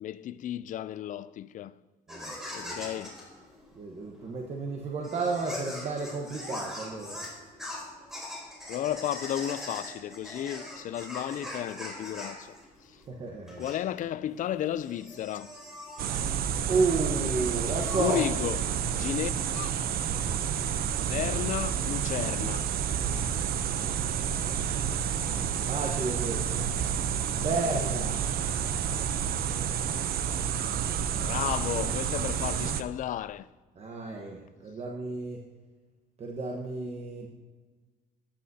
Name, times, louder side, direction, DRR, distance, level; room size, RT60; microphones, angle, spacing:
voice 1, 0.0-1.7 2.5-3.2 8.7-12.6 13.6-15.5 18.0-19.7 21.1-22.7 31.2-33.5, left 11 dB, 50° left, 0.4 m, -33 dB
sound 1, 2.1-18.9, left 1 dB, 5° right, 3.6 m, -42 dB
voice 2, 2.6-3.0 3.8-7.2 13.1-13.7 16.7-18.2 25.6-26.7 27.2-28.2 33.8-35.4 36.2-37.3, right 3 dB, 40° right, 1.2 m, -32 dB
sound 2, 16.0-32.8, right 8 dB, 60° right, 0.7 m, -30 dB
14.0 x 10.5 x 2.8 m
cardioid pair, 110°, 17 cm